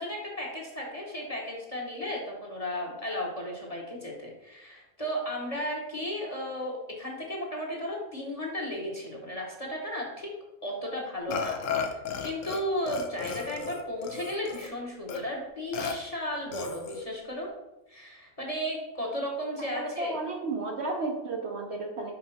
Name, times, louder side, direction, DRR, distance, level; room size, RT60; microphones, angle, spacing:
voice 1, 0.0-10.3 10.6-11.6 12.2-17.5 17.9-20.2, equal, 30° left, -2 dB, 1.1 m, -34 dB
Burping eructation, 11.3-12.6 12.9-14.7 15.1-15.2 15.7-15.9 16.5-17.1, left 6 dB, 70° left, 1.0 m, -34 dB
voice 2, 19.7-22.1, right 3 dB, 55° right, 1 dB, 0.9 m, -33 dB
5.7 x 4.5 x 4.2 m, 0.94 s
omnidirectional pair, 1.5 m